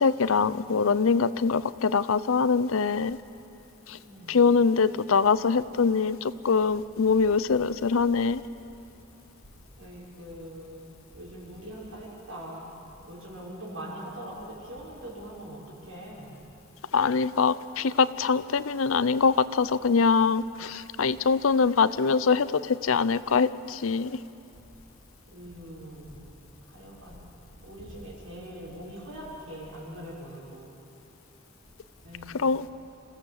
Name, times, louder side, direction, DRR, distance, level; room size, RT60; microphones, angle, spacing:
voice 1, 0.0-3.2 3.9-4.0 4.3-8.4 16.9-24.2 32.3-32.7, left 5 dB, 80° left, 15 dB, 0.6 m, -23 dB
voice 2, 4.0-4.4 9.8-12.7 13.0-16.4 21.5-21.8 25.3-26.3 26.6-27.2 27.6-30.7 32.0-32.3, right 1 dB, 85° right, -6 dB, 6.4 m, -42 dB
27.0 x 15.5 x 7.3 m, 2.7 s
head